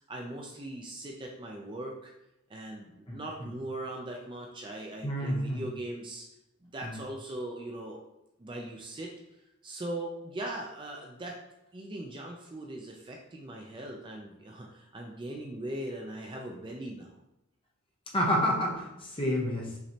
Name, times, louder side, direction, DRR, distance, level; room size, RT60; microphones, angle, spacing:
voice 1, 0.1-2.1 2.5-6.3 6.6-8.0 8.4-9.1 9.6-11.4 11.7-17.1, right 1 dB, 20° right, 0 dB, 0.4 m, -40 dB
voice 2, 3.1-3.5 5.0-5.7 6.8-7.0 18.1-19.8, equal, 25° left, -2 dB, 0.9 m, -29 dB
5.7 x 3.1 x 2.8 m, 0.89 s
head